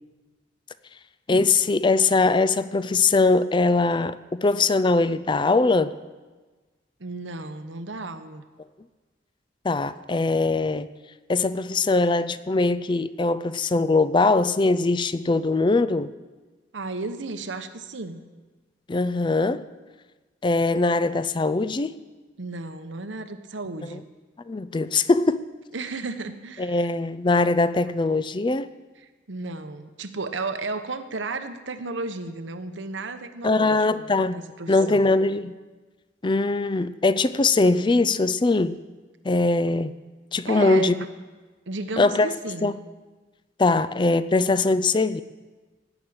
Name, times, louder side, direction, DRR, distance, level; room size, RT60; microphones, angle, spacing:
voice 1, 1.3-5.9 9.6-10.9 11.3-16.1 18.9-19.6 20.4-22.0 23.8-24.0 24.5-25.5 26.6-28.7 33.4-35.6 36.2-38.8 39.2-40.0 40.3-40.9 42.0-42.3 42.6-42.7 43.6-45.2, left 3 dB, 25° left, 0.4 m, -21 dB
voice 2, 7.0-8.4 16.7-18.2 22.4-24.0 25.7-26.9 29.3-35.1 40.5-41.1 41.7-42.7, right 3 dB, 90° right, 1.0 m, -33 dB
17.0 x 6.2 x 8.7 m
head